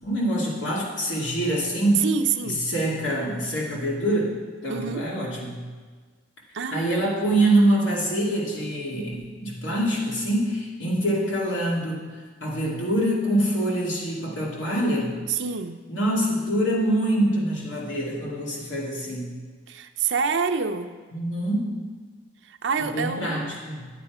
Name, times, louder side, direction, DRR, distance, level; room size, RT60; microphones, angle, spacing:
voice 1, 0.0-2.0 2.4-4.4 4.6-5.6 6.7-12.0 12.4-15.2 15.9-19.3 21.1-21.9 22.8-23.9, right 1 dB, 85° left, -3 dB, 2.5 m, -25 dB
voice 2, 2.0-2.7 4.7-5.1 6.5-7.1 15.3-15.8 19.7-20.9 22.4-23.5, right 5 dB, 75° right, 7 dB, 0.6 m, -27 dB
11.5 x 8.4 x 4.9 m, 1.4 s
head